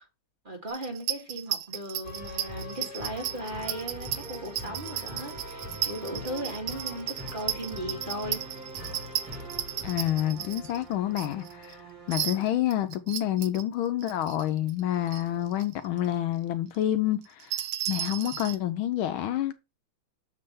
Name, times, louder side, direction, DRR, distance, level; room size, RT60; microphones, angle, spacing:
voice 1, 0.4-8.4, right 1 dB, 25° right, 1.9 m, -37 dB
sound 1, 0.7-11.7 12.1-13.6 14.0-14.8 15.1-15.2 15.5-15.9 16.1-16.2 17.2-18.6, right 12 dB, 75° right, 1.6 m, -34 dB
sound 2, 2.0-12.6, equal, 40° right, 2.3 m, -42 dB
voice 2, 9.8-11.8 12.1-17.5 17.9-19.5, left 12 dB, 75° left, 1.4 m, -28 dB
7.4 x 3.3 x 5.4 m
omnidirectional pair, 2.4 m